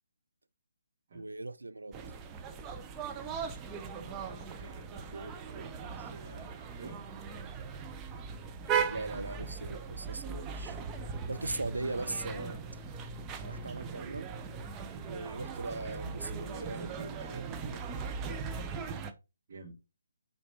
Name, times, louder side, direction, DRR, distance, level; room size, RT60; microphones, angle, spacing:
voice 1, 1.1-1.9 8.9-10.8 11.3-12.6 13.4-14.3 15.0-17.8, right 2 dB, 80° right, 0.7 m, -39 dB
sound 1, 1.9-19.1, right 6 dB, 15° right, 0.7 m, -39 dB
voice 2, 3.9-7.0 14.9-15.1 18.5-18.7 19.5-19.8, right 3 dB, 45° right, 2.3 m, -50 dB
5.9 x 4.0 x 4.9 m
figure-of-eight pair, 145°, 0 cm